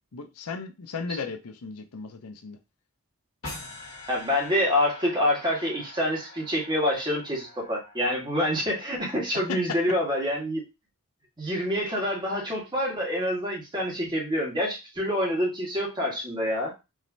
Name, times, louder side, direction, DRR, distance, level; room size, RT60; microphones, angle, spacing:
voice 1, 0.1-2.6 9.3-9.8, left 5 dB, 85° left, 0.7 m, -35 dB
sound 1, 3.4-8.6, left 2 dB, 60° left, 1.8 m, -44 dB
voice 2, 4.1-10.6 11.4-16.7, left 1 dB, 20° right, 1.6 m, -27 dB
4.9 x 3.1 x 2.7 m
head